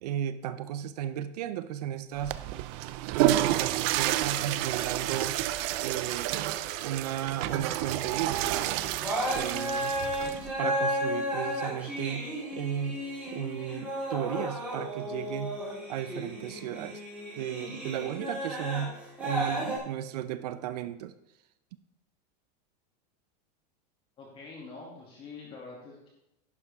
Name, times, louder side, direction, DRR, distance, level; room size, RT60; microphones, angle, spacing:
voice 1, 0.0-2.4 3.1-5.4 5.8-6.3 6.8-8.9 9.3-9.9 10.6-15.6 15.9-17.0 17.4-21.1, right 10 dB, 70° right, 12 dB, 0.7 m, -35 dB
Water / Toilet flush, 2.1-10.5, right 14 dB, 40° right, 0.4 m, -30 dB
sound 1, 6.0-7.5 8.4-8.6 8.9-19.8, equal, 5° right, 3.6 m, -34 dB
voice 2, 24.2-26.1, left 4 dB, 25° left, -3 dB, 2.5 m, -45 dB
11.0 x 9.8 x 3.6 m, 0.85 s
supercardioid pair, 165°, 21 cm